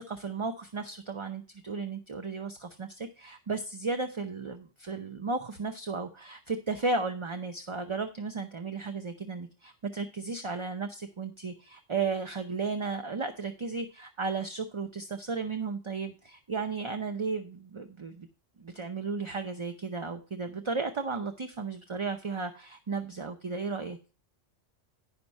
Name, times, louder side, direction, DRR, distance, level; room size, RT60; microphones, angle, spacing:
voice 1, 0.0-18.3 18.6-24.0, right 4 dB, 30° right, 7 dB, 0.6 m, -34 dB
9.5 x 5.9 x 5.3 m, 0.33 s
omnidirectional pair, 1.2 m